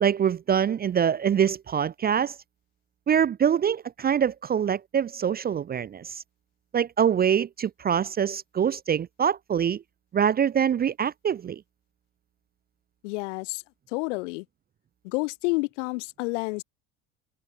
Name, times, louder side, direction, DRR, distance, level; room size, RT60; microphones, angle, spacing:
voice 1, 0.0-2.4 3.1-6.2 6.7-9.8 10.1-11.6, right 8 dB, 25° right, 0.6 m, -24 dB
voice 2, 13.0-13.6 13.9-14.4 15.0-16.6, left 26 dB, 70° left, 3.1 m, -29 dB
hypercardioid pair, 70°, 38 cm